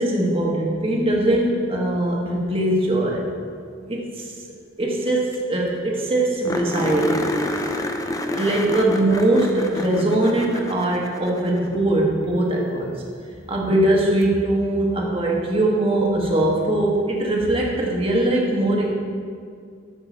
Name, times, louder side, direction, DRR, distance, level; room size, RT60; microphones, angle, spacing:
voice 1, 0.0-3.2 3.9-4.1 4.8-7.3 8.3-13.0 13.5-18.9, right 1 dB, 30° right, -2 dB, 1.5 m, -21 dB
sound 1, 5.1-5.2 5.3-5.4 5.8-5.9 6.4-11.9 14.2-14.3 17.2-17.3, left 1 dB, 20° left, 0.6 m, -28 dB
13.0 x 5.8 x 4.5 m, 2.2 s
head